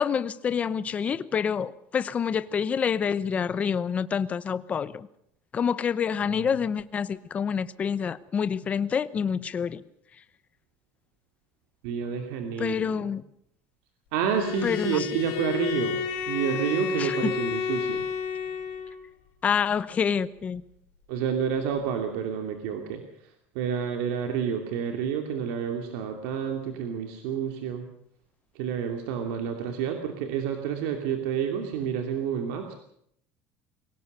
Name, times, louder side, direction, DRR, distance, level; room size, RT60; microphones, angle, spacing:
voice 1, 0.0-5.1 5.5-9.8 12.6-13.2 14.6-15.1 17.0-17.3 19.4-20.6, left 7 dB, 25° left, 15 dB, 0.8 m, -27 dB
voice 2, 11.8-12.9 14.1-16.0 16.3-18.0 21.1-23.0 23.5-27.8 28.5-32.8, right 7 dB, 90° right, 4 dB, 2.7 m, -29 dB
Bowed string instrument, 14.2-19.0, left 7 dB, 85° left, 4.9 m, -31 dB
23.5 x 17.5 x 6.8 m, 0.71 s
cardioid pair, 160°, 6 cm